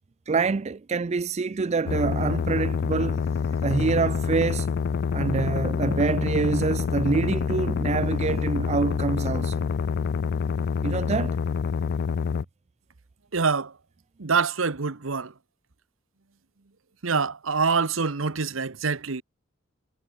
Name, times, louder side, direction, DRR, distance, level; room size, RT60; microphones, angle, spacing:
voice 1, 0.3-3.2 3.6-4.7 5.1-9.7 10.8-11.4, right 4 dB, 35° right, 0.4 m, -26 dB
sound 1, 1.9-12.4, left 6 dB, 55° left, 0.3 m, -27 dB
voice 2, 13.3-13.8 14.2-15.3 17.0-19.2, right 5 dB, 75° right, 1.1 m, -25 dB
head